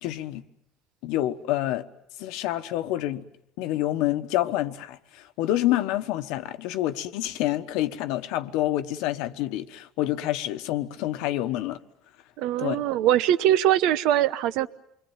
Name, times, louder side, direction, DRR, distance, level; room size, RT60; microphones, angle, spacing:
voice 1, 0.0-0.4 1.0-1.8 2.2-3.2 3.6-11.8 12.6-12.8, left 14 dB, 80° left, 1.2 m, -27 dB
voice 2, 12.4-14.7, right 12 dB, 75° right, 0.9 m, -22 dB
28.0 x 22.0 x 7.3 m
cardioid pair, 120°, 0 cm